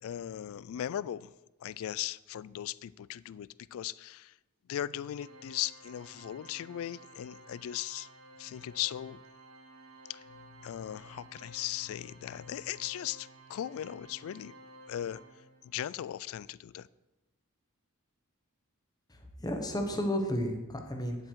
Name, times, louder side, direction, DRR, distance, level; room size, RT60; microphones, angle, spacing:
voice 1, 0.0-1.3 1.6-4.3 4.7-8.1 8.4-9.2 10.1-10.2 10.6-14.5 14.9-15.2 15.6-16.9, left 11 dB, 65° left, 19 dB, 0.3 m, -38 dB
Organ, 5.1-15.9, right 2 dB, 80° right, 1.2 m, -54 dB
voice 2, 19.1-21.3, equal, 20° left, 4 dB, 1.1 m, -33 dB
9.5 x 7.6 x 4.6 m, 1.0 s
head